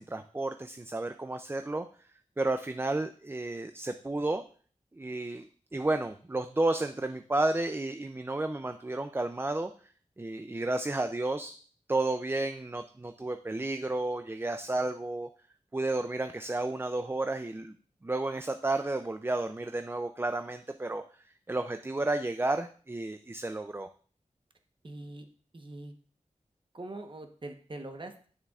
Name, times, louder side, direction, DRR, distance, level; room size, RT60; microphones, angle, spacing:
voice 1, 0.0-1.9 2.4-4.4 5.0-9.7 10.2-11.5 11.9-15.3 15.7-17.7 18.0-21.0 21.5-23.9, right 2 dB, 20° right, 8 dB, 0.4 m, -32 dB
voice 2, 24.8-25.3 25.5-25.9 26.7-28.3, right 2 dB, 40° right, 5 dB, 1.0 m, -43 dB
9.0 x 6.7 x 2.4 m, 0.44 s
wide cardioid pair, 85°, 13 cm